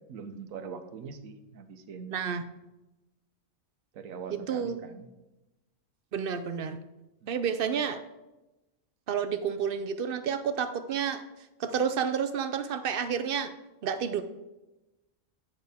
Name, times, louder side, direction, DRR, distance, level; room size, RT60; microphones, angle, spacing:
voice 1, 0.1-2.2 3.9-5.1 7.2-7.3, right 5 dB, 85° right, 9 dB, 1.2 m, -42 dB
voice 2, 2.1-2.5 4.3-4.8 6.1-6.8 7.3-8.0 9.1-11.2 11.6-13.5 13.8-14.2, right 7 dB, 60° right, 11 dB, 0.6 m, -30 dB
9.7 x 6.6 x 3.5 m, 1.0 s
omnidirectional pair, 1.4 m